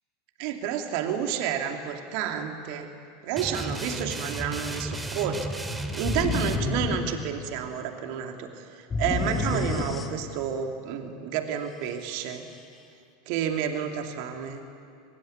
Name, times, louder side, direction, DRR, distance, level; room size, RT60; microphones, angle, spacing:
voice 1, 0.4-2.9 3.2-8.7 9.0-12.5 13.3-14.6, right 8 dB, 50° right, 4 dB, 2.8 m, -30 dB
sound 1, 3.3-6.6, right 1 dB, 10° right, 2.3 m, -34 dB
sound 2, 6.0-7.8 8.9-10.6, left 3 dB, 20° left, 2.4 m, -29 dB
24.5 x 22.0 x 9.7 m, 2.5 s
figure-of-eight pair, 85°, 0 cm